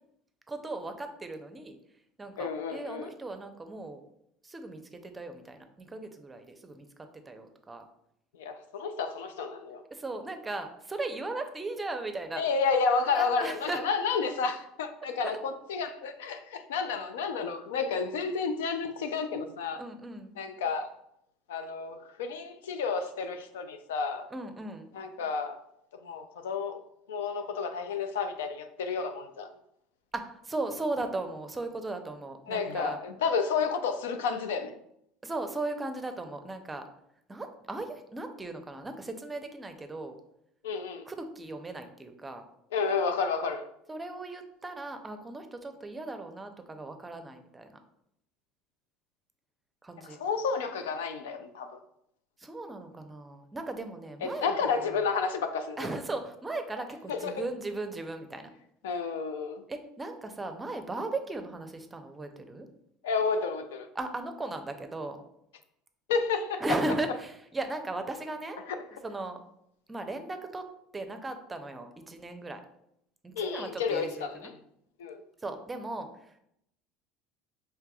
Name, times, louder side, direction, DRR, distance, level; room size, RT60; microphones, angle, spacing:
voice 1, 0.5-1.8 2.2-4.0 4.4-7.9 9.9-12.4 13.1-13.8 15.2-15.4 19.8-20.4 24.3-24.9 30.1-33.0 35.2-36.9 37.3-40.2 41.1-42.4 43.9-47.8 49.8-50.2 52.4-54.9 55.8-58.5 59.7-62.7 63.9-65.2 66.6-68.6 69.0-69.4 69.9-70.6 70.9-72.6 73.2-74.5 75.4-76.4, right 2 dB, 20° right, 0.6 m, -37 dB
voice 2, 2.4-3.1 8.4-9.8 12.4-19.8 20.4-20.9 21.5-24.3 24.9-25.6 26.0-26.8 27.1-29.5 32.5-34.7 40.6-41.0 42.7-43.7 50.0-51.8 54.2-55.9 57.1-57.4 58.8-59.6 63.0-63.9 66.1-66.6 68.7-68.8 73.4-74.5 75.0-75.2, left 5 dB, 80° left, 0.4 m, -31 dB
4.6 x 3.3 x 2.3 m
hypercardioid pair, 80°, 0 cm